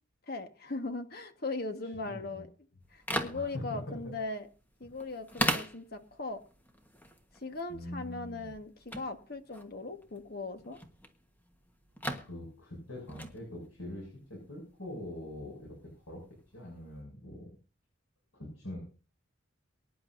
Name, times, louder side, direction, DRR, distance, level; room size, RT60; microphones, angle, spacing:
voice 1, 0.3-2.5 2.9-4.5 4.8-6.4 7.4-10.8, left 3 dB, 50° left, 7 dB, 1.4 m, -39 dB
voice 2, 1.8-2.4 3.3-4.1 7.7-8.5 12.2-15.8 16.1-16.2 16.5-17.5 18.3-18.8, left 1 dB, 90° left, -2 dB, 6.8 m, -43 dB
sound 1, 2.8-17.0, equal, 10° left, 1.3 m, -41 dB
24.0 x 10.5 x 2.7 m, 0.35 s
head